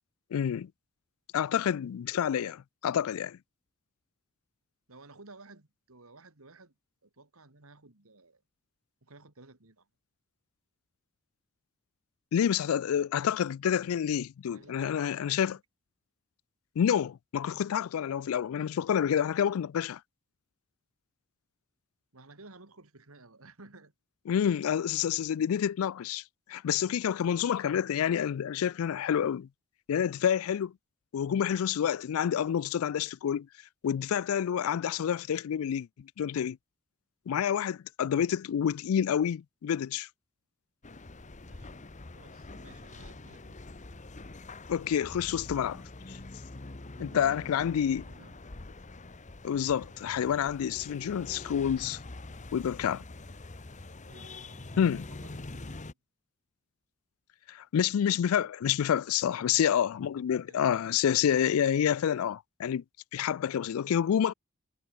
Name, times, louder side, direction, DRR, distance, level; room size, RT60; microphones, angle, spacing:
voice 1, 0.3-0.7 1.3-3.4 12.3-15.6 16.8-20.0 24.3-26.2 26.5-29.5 29.9-30.7 31.1-33.5 33.8-36.6 37.3-40.1 44.7-45.8 46.1-46.2 47.0-48.0 49.4-52.0 52.5-53.0 54.8-55.1 57.5-62.8 63.1-64.3, left 8 dB, 75° left, 0.3 m, -28 dB
voice 2, 4.9-6.7 7.0-8.4 9.0-9.9 14.5-15.6 22.1-23.9 41.4-43.6 44.0-44.1 46.9-47.5 47.8-48.6 54.1-55.8 59.4-59.9 60.5-60.7, right 3 dB, 80° right, 2.7 m, -55 dB
sound 1, 40.8-55.9, left 2 dB, 35° left, 1.1 m, -45 dB
head